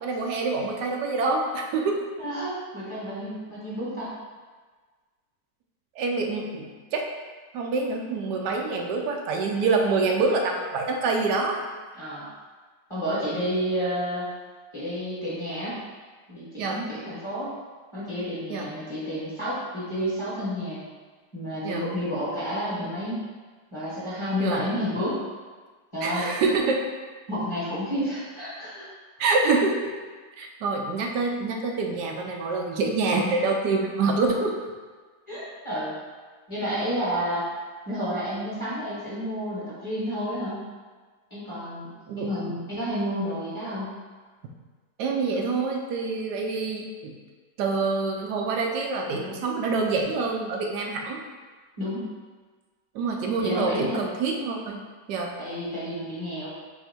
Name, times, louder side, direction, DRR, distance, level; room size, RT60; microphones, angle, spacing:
voice 1, 0.0-2.0 6.0-7.1 7.5-11.6 16.6-16.8 18.5-18.7 21.6-21.9 24.4-24.6 26.0-26.8 29.2-29.9 30.4-34.6 42.1-42.6 45.0-47.1 47.6-51.2 52.9-55.3, right 3 dB, 85° right, 1 dB, 1.2 m, -26 dB
voice 2, 2.2-4.1 11.9-12.3 12.9-14.3 14.7-15.8 16.3-17.5 17.9-20.8 21.3-23.2 23.7-25.2 25.9-26.3 27.3-28.9 35.3-35.9 36.5-37.5 37.8-40.6 41.3-41.9 42.2-43.9 49.2-49.3 51.8-52.0 53.4-54.0 55.4-56.5, equal, 20° left, -9 dB, 1.2 m, -30 dB
4.3 x 2.7 x 4.4 m, 1.4 s
omnidirectional pair, 1.8 m